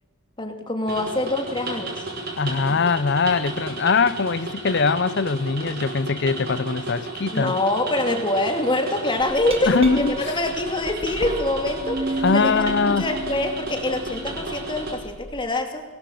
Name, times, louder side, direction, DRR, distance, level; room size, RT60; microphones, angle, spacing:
voice 1, 0.4-2.1 2.7-2.9 7.3-15.8, left 1 dB, 20° left, 2.6 m, -25 dB
sound 1, 0.9-14.9, right 2 dB, 45° right, 5.8 m, -33 dB
voice 2, 2.4-7.5 9.7-10.1 12.2-13.1, left 4 dB, 50° left, 0.7 m, -22 dB
Glass, 9.2-15.4, right 1 dB, 25° right, 2.1 m, -32 dB
24.5 x 19.5 x 7.7 m
head